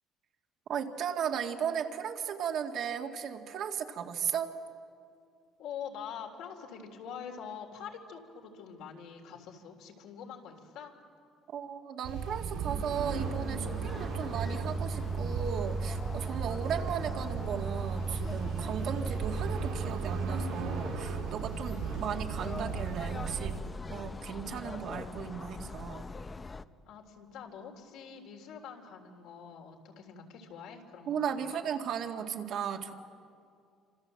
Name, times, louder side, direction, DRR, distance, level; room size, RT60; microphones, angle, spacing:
voice 1, 0.7-4.5 11.5-23.6 23.9-26.1 31.1-32.9, right 8 dB, 60° right, 3 dB, 2.0 m, -36 dB
voice 2, 5.6-10.9 26.9-31.6, left 7 dB, 75° left, 2 dB, 3.6 m, -45 dB
sound 1, 12.0-23.6, right 5 dB, 80° right, 5.7 m, -35 dB
sound 2, 13.1-26.6, left 4 dB, 20° left, 0.6 m, -43 dB
28.0 x 26.5 x 7.7 m, 2.3 s
cardioid pair, 125°, 0 cm